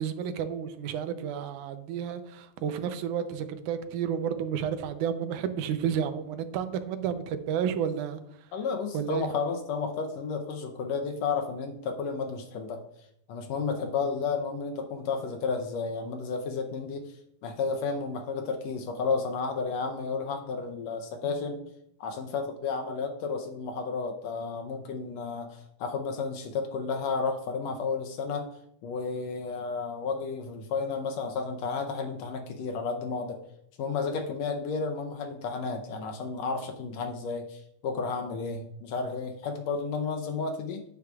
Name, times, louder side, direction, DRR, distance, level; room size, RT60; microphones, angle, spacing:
voice 1, 0.0-8.2 8.9-9.3, right 8 dB, 80° right, 9 dB, 2.2 m, -31 dB
voice 2, 8.5-12.8 13.3-17.2 17.4-21.7 22.0-28.5 28.8-33.4 33.8-40.8, left 4 dB, 75° left, 4 dB, 1.7 m, -32 dB
9.4 x 9.3 x 2.4 m, 0.75 s
omnidirectional pair, 3.5 m